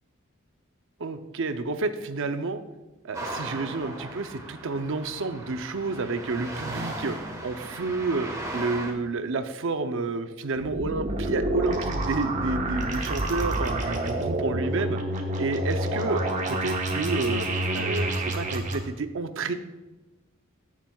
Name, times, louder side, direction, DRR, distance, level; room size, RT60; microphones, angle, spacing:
voice 1, 1.0-2.6 3.0-7.2 7.4-8.3 8.5-15.0 15.4-16.2 16.5-17.5 17.7-19.5, right 3 dB, 65° right, 9 dB, 0.6 m, -30 dB
sound 1, 3.1-8.9, right 1 dB, 15° right, 1.3 m, -37 dB
sound 2, 10.6-18.8, right 1 dB, 35° right, 1.2 m, -28 dB
14.5 x 7.2 x 2.3 m, 1.1 s
head